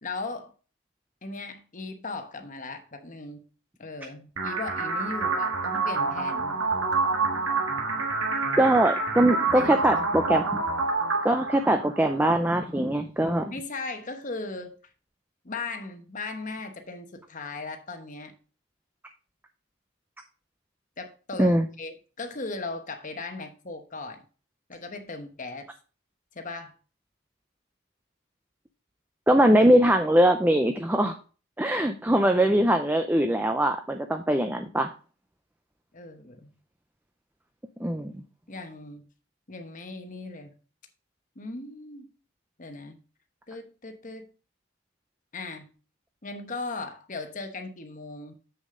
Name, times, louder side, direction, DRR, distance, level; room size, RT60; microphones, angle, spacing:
voice 1, 0.0-0.5 1.2-3.4 3.8-6.6 9.5-10.2 13.5-14.8 15.4-18.3 21.0-24.2 24.7-25.7 26.3-26.7 35.9-36.5 38.5-39.0 39.5-40.5 41.4-42.1 42.6-43.0 43.5-44.3 45.3-45.7 46.2-48.3, left 3 dB, 35° left, 6 dB, 1.1 m, -38 dB
sound 1, 4.4-12.3, right 3 dB, 65° right, 1.5 m, -27 dB
voice 2, 8.6-10.4 11.2-13.5 21.4-21.7 29.3-31.2 31.6-34.9 37.8-38.1, right 1 dB, 10° right, 6 dB, 0.4 m, -22 dB
7.4 x 6.6 x 3.7 m, 0.37 s
head